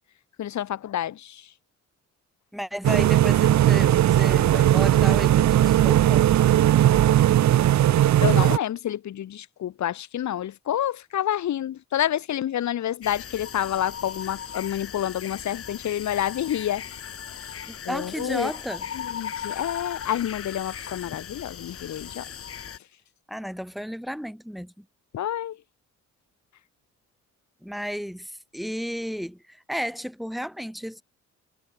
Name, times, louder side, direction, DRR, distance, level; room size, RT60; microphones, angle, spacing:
voice 1, 0.4-1.5 8.2-16.8 17.8-18.5 18.9-22.3 25.1-25.6, left 11 dB, 70° left, 3.0 m, -28 dB
voice 2, 2.5-6.3 17.7-18.9 23.3-24.9 27.6-31.0, equal, ahead, 7.3 m, -33 dB
sound 1, 2.8-8.6, right 12 dB, 65° right, 1.3 m, -18 dB
sound 2, 13.0-22.8, left 8 dB, 50° left, 1.7 m, -37 dB
cardioid pair, 90°, 30 cm